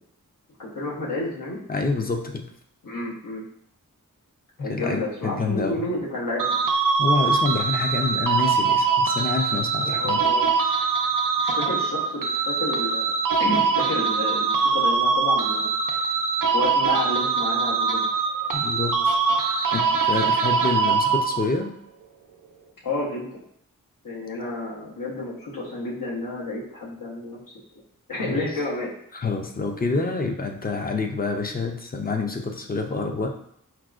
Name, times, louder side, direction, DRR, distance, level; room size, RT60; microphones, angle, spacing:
voice 1, 0.6-1.6 2.8-3.4 4.6-6.6 9.8-10.5 11.4-13.1 13.4-15.7 16.5-18.1 22.8-23.4 24.0-27.4 28.1-28.9, left 2 dB, 75° left, -5 dB, 1.0 m, -30 dB
voice 2, 1.7-2.4 4.6-5.8 7.0-10.2 18.5-19.2 19.7-21.7 28.2-28.4 29.1-33.3, left 3 dB, 30° left, 3 dB, 0.4 m, -27 dB
sound 1, 6.4-21.6, right 5 dB, 70° right, 0.5 m, -23 dB
4.6 x 2.1 x 2.4 m, 0.70 s
wide cardioid pair, 70°, 34 cm